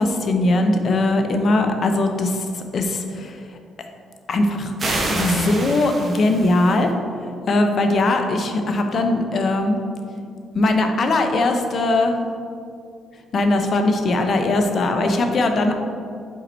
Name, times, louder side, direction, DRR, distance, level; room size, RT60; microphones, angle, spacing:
voice 1, 0.0-3.4 4.3-6.9 7.2-9.8 10.5-12.2 13.3-15.7, left 2 dB, 50° left, 5 dB, 0.7 m, -20 dB
sound 1, 4.8-6.8, right 2 dB, 35° right, 1.2 m, -27 dB
5.1 x 4.8 x 4.3 m, 2.3 s
cardioid pair, 90°, 0 cm